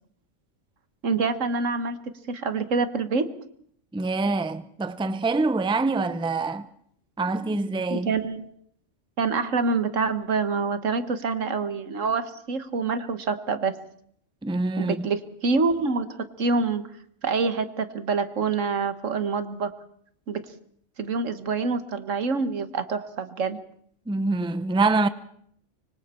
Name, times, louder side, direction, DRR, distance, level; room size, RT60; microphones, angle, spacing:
voice 1, 1.0-2.0 2.3-3.3 7.5-7.6 7.9-8.5 9.2-13.7 14.8-16.1 16.4-16.8 17.2-19.7 20.3-20.4 21.0-23.6, right 4 dB, 90° right, 1.7 m, -26 dB
voice 2, 3.9-6.7 7.2-8.1 14.4-15.1 24.1-25.1, right 3 dB, 5° right, 0.5 m, -25 dB
25.0 x 24.5 x 4.4 m
omnidirectional pair, 1.3 m